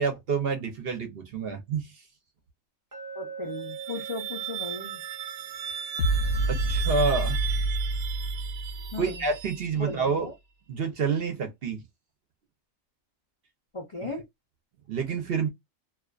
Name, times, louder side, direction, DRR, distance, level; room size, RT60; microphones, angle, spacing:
voice 1, 0.0-1.9 6.5-7.4 9.0-10.3 10.7-11.8 14.9-15.5, right 5 dB, 55° right, 0.7 m, -28 dB
Glass, 2.9-7.0, right 6 dB, 25° right, 0.5 m, -44 dB
voice 2, 3.1-5.0 8.9-9.3 9.8-10.3 13.7-14.2, left 2 dB, 55° left, 0.3 m, -36 dB
sound 1, 3.4-10.1, right 10 dB, 90° right, 1.0 m, -37 dB
sound 2, 6.0-9.4, right 2 dB, 70° left, 0.9 m, -28 dB
2.4 x 2.3 x 2.3 m
omnidirectional pair, 1.4 m